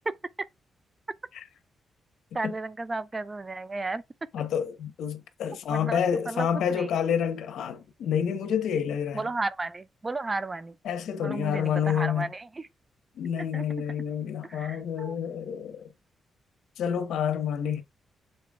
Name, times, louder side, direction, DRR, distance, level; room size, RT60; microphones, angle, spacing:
voice 1, 2.3-4.0 5.7-6.9 9.1-10.8 11.2-12.7 13.5-13.7 14.4-15.2, right 3 dB, 25° right, 0.5 m, -33 dB
voice 2, 4.3-9.2 10.9-12.3 13.2-15.9 16.8-17.8, left 8 dB, 85° left, 1.2 m, -28 dB
7.0 x 4.2 x 3.6 m
cardioid pair, 105°, 0 cm